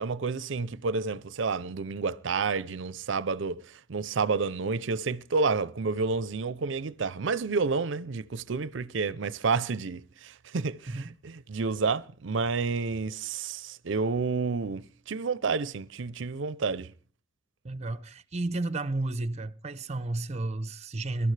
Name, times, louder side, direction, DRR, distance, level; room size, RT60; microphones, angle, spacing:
voice 1, 0.0-3.6 3.9-16.9, right 4 dB, 70° right, 0.5 m, -30 dB
voice 2, 17.6-21.3, right 2 dB, 35° right, 0.7 m, -32 dB
22.5 x 12.5 x 3.3 m
head